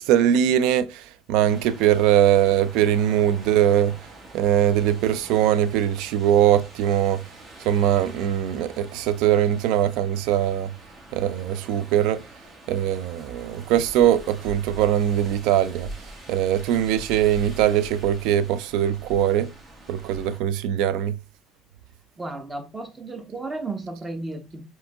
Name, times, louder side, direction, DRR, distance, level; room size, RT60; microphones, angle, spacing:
voice 1, 0.0-4.0 4.3-7.2 7.6-10.7 11.1-12.2 12.7-15.9 16.3-19.5 19.9-21.2, right 10 dB, 75° right, 0.3 m, -21 dB
sound 1, 1.4-20.4, right 1 dB, 40° right, 1.4 m, -44 dB
voice 2, 22.2-24.7, right 2 dB, 20° right, 1.0 m, -34 dB
5.0 x 2.8 x 2.3 m
supercardioid pair, 75°, 0 cm